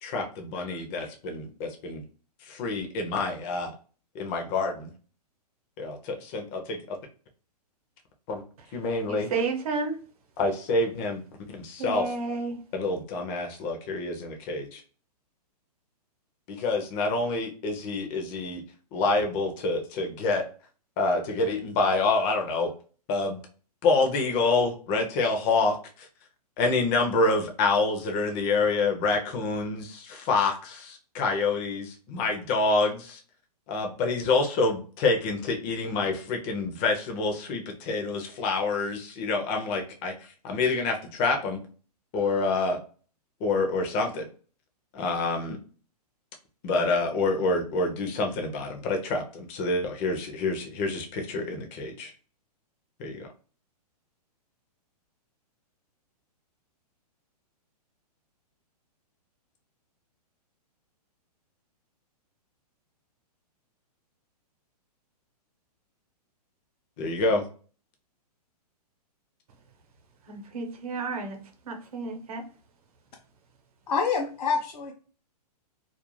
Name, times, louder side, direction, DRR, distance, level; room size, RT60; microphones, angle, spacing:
voice 1, 0.0-2.0 2.5-3.7 4.1-4.9 5.8-7.0 8.3-8.4 8.7-9.3 10.4-11.2 11.5-12.0 12.7-14.8 16.5-18.6 18.9-20.4 21.0-22.7 23.1-23.4 23.8-26.1 26.6-33.2 33.7-40.1 40.4-41.6 42.1-42.8 43.4-44.3 44.9-45.6 46.6-52.1 53.0-53.3 67.0-67.4, left 3 dB, 20° left, 0.4 m, -27 dB
voice 2, 9.1-10.0 11.8-12.6 70.3-71.4 71.6-72.4, right 4 dB, 60° right, 0.8 m, -31 dB
voice 3, 73.9-74.9, left 5 dB, 80° left, 0.6 m, -26 dB
2.4 x 2.1 x 3.0 m
hypercardioid pair, 160°, 21 cm